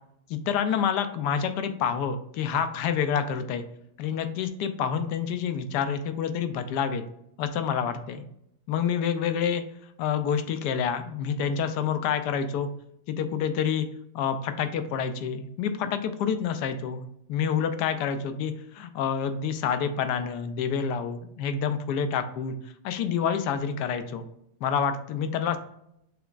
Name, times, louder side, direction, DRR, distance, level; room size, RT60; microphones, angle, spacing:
voice 1, 0.3-3.6 4.0-7.0 7.4-8.2 8.7-9.6 10.0-12.7 13.1-13.9 14.1-22.6 22.8-24.3 24.6-25.6, left 7 dB, 85° left, 9 dB, 1.2 m, -28 dB
6.6 x 3.0 x 2.4 m, 0.76 s
omnidirectional pair, 1.8 m